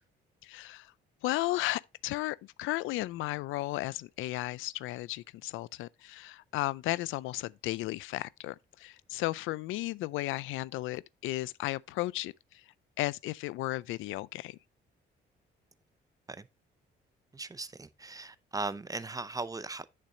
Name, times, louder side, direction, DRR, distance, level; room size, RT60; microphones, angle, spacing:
voice 1, 0.4-0.9 1.2-12.6 13.0-14.6, left 17 dB, 90° left, 0.4 m, -34 dB
voice 2, 17.3-19.9, right 3 dB, 15° right, 0.6 m, -38 dB
8.3 x 6.6 x 2.7 m
cardioid pair, 90°, 20 cm